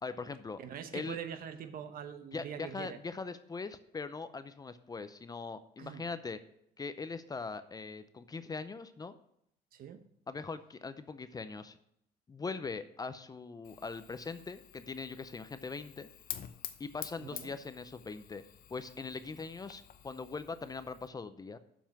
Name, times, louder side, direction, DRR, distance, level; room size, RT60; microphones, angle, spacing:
voice 1, 0.0-0.6 0.9-1.2 2.3-6.4 6.8-9.1 10.3-11.8 12.3-16.1 16.8-18.4 18.7-21.6, left 4 dB, 20° left, 12 dB, 0.5 m, -41 dB
voice 2, 0.6-3.0 5.8-6.0 9.7-10.0 17.2-17.5, right 8 dB, 60° right, 10 dB, 1.0 m, -43 dB
Fire, 13.6-21.1, left 10 dB, 60° left, 0.8 m, -49 dB
7.4 x 5.5 x 7.2 m, 0.73 s
cardioid pair, 110°, 17 cm